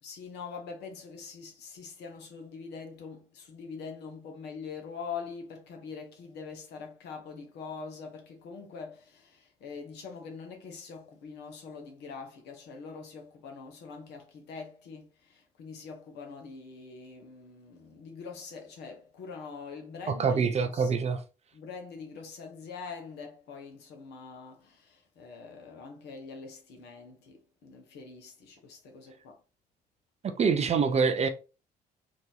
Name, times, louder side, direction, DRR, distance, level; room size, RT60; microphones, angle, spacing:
voice 1, 0.0-20.9 21.5-29.4, left 5 dB, 55° left, 1.0 m, -44 dB
voice 2, 20.1-21.2 30.2-31.3, right 5 dB, 30° right, 0.5 m, -25 dB
3.8 x 2.6 x 3.1 m
figure-of-eight pair, 45°, 20 cm